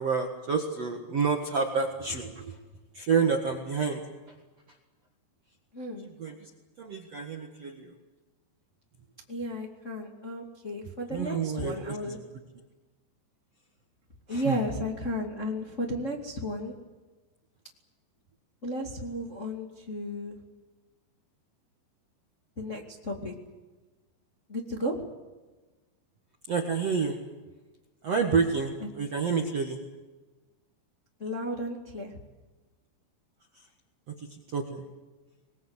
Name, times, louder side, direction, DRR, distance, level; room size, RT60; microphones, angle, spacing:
voice 1, 0.0-2.6 2.9-4.0 6.2-6.5 6.8-7.9 11.1-12.2 14.3-14.6 26.5-27.2 28.0-29.8 33.5-33.7 34.1-34.9, right 5 dB, 55° right, 3 dB, 1.8 m, -29 dB
voice 2, 5.7-6.1 9.3-12.2 14.3-16.8 18.6-20.4 22.6-23.3 24.5-25.0 28.8-28.9 31.2-32.2, equal, 25° left, 0 dB, 1.6 m, -34 dB
26.5 x 21.0 x 8.1 m, 1.2 s
omnidirectional pair, 5.3 m